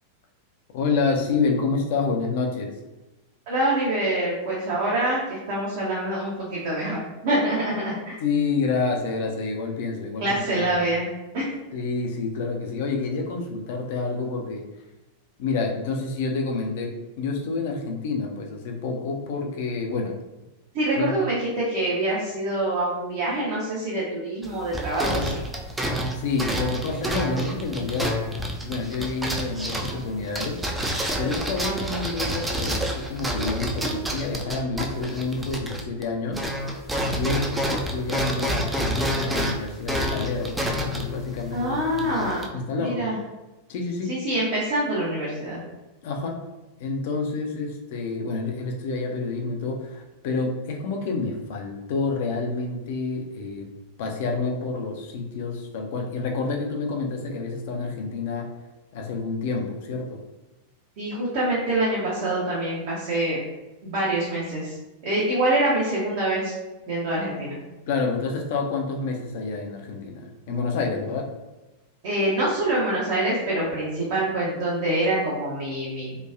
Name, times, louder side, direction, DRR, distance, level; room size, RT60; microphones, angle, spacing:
voice 1, 0.7-2.7 8.2-11.0 11.7-14.7 15.4-20.2 21.0-21.2 26.1-28.1 28.6-30.6 31.2-36.4 37.0-43.1 43.7-44.1 46.0-46.4 46.8-53.7 54.0-58.5 58.9-60.2 67.9-71.3, left 4 dB, 50° left, 2 dB, 0.5 m, -28 dB
voice 2, 3.5-8.2 10.2-11.1 11.3-11.5 20.7-25.4 41.5-42.5 42.8-43.2 44.1-45.6 61.0-63.4 63.8-64.8 65.0-66.5 66.8-67.6 72.0-76.2, right 1 dB, 50° right, -6 dB, 0.7 m, -25 dB
sound 1, 24.4-36.1 36.3-42.5, equal, 10° right, 0.4 m, -28 dB
2.9 x 2.2 x 2.4 m, 1.1 s
figure-of-eight pair, 90°, 0 cm